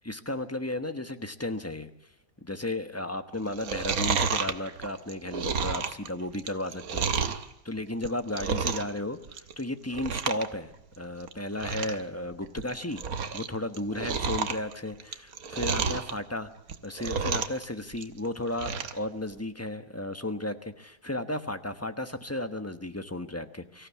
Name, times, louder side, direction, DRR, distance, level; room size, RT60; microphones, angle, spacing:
voice 1, 0.0-1.9 2.4-7.3 7.6-10.7 11.0-13.0 13.3-16.5 16.8-23.9, left 1 dB, 10° left, 9 dB, 1.0 m, -34 dB
Chewing mastication, 3.5-7.5 7.9-9.0 9.2-9.6 9.9-10.5 10.7-10.8 11.3-11.4 11.6-12.0 12.4-13.5 13.7-16.1 16.6-17.6 17.9-19.0 19.4-19.5, right 6 dB, 75° right, 1.6 m, -30 dB
24.5 x 15.0 x 8.4 m, 0.88 s
omnidirectional pair, 1.5 m